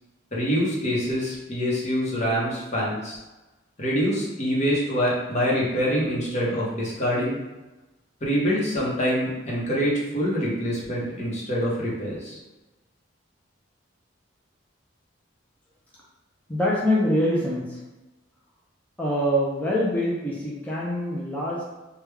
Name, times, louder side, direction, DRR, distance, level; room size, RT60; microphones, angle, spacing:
voice 1, 0.3-3.2 3.8-7.4 8.2-12.4, equal, 35° left, -5 dB, 0.9 m, -25 dB
voice 2, 16.5-17.8 19.0-21.6, equal, 10° left, -6 dB, 0.5 m, -24 dB
3.3 x 2.3 x 3.3 m, 1.1 s
head